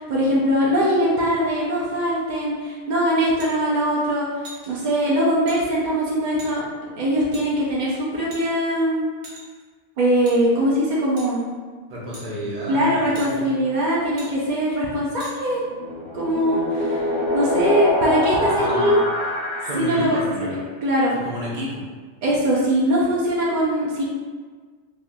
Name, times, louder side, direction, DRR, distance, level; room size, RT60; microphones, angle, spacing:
voice 1, 0.0-4.3 4.7-6.6 7.0-9.1 10.0-11.4 12.7-15.6 16.1-17.0 17.3-19.0 19.8-21.1 22.2-24.0, equal, 80° right, -6 dB, 0.4 m, -21 dB
sound 1, 3.4-3.5 4.4-4.7 5.5-5.6 6.4-6.5 7.3-7.5 8.3-8.7 9.2-9.6 10.3-10.4 11.2-11.4 12.1-12.3 13.2-13.3 14.2-14.3 15.2-15.3, right 1 dB, 55° right, 1.0 m, -40 dB
voice 2, 11.9-13.6 18.5-19.0 19.6-20.5 21.1-21.8, right 1 dB, 35° right, -6 dB, 0.7 m, -30 dB
sound 2, 15.5-20.3, equal, 65° left, 0.4 m, -25 dB
3.4 x 2.2 x 2.6 m, 1.5 s
omnidirectional pair, 1.4 m